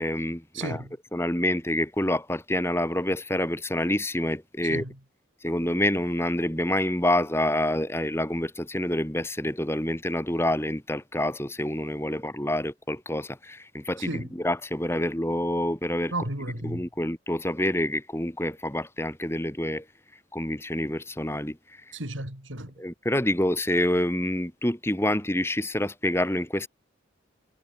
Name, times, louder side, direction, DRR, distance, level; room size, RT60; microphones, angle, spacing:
voice 1, 0.0-0.8 1.1-4.8 5.4-16.1 16.6-19.8 20.3-21.6 22.8-26.7, left 1 dB, 10° left, 2.0 m, -27 dB
voice 2, 0.5-0.9 4.7-4.9 14.0-14.3 16.1-16.9 21.9-22.7, right 1 dB, 75° right, 6.7 m, -33 dB
head